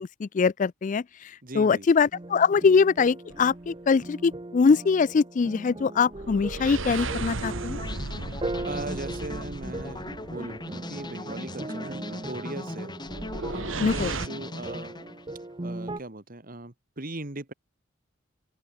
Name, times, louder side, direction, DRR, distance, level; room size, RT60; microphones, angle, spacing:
voice 1, 0.0-7.8 13.8-14.1, left 5 dB, 40° left, 0.4 m, -23 dB
voice 2, 1.4-1.9 8.6-12.9 13.5-13.6 13.9-15.0 15.6-17.5, right 2 dB, 45° right, 2.1 m, -39 dB
sound 1, 2.1-16.0, right 2 dB, 25° right, 0.8 m, -39 dB
sound 2, 3.3-3.7 6.1-10.7 13.1-14.3, right 3 dB, 80° right, 1.9 m, -35 dB
sound 3, 7.8-15.5, left 2 dB, 20° left, 2.0 m, -39 dB
open air
head